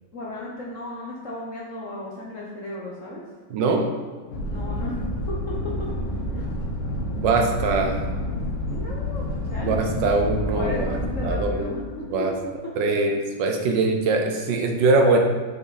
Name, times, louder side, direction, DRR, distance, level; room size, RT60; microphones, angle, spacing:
voice 1, 0.1-3.2 4.5-6.5 8.7-9.8 10.5-12.3, left 1 dB, 60° left, -4 dB, 0.9 m, -35 dB
voice 2, 3.5-3.9 7.2-8.0 9.6-11.0 11.2-11.8 12.1-12.3 12.8-15.2, right 3 dB, 75° right, 3 dB, 1.2 m, -22 dB
sound 1, 4.3-11.4, left 1 dB, 90° left, 1.9 m, -28 dB
5.1 x 5.0 x 4.1 m, 1.5 s
omnidirectional pair, 2.2 m